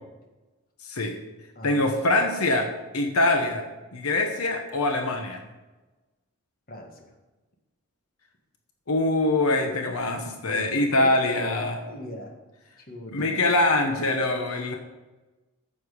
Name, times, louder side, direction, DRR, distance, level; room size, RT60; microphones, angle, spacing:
voice 1, 0.8-1.2 1.6-3.7 3.9-5.4 8.9-11.8 13.1-14.8, left 2 dB, 85° left, 4 dB, 1.0 m, -24 dB
voice 2, 1.5-1.9 6.7-7.0 10.4-10.7 10.9-12.3 12.8-13.4, left 1 dB, 40° left, 2 dB, 1.7 m, -40 dB
9.6 x 7.6 x 5.1 m, 1.1 s
head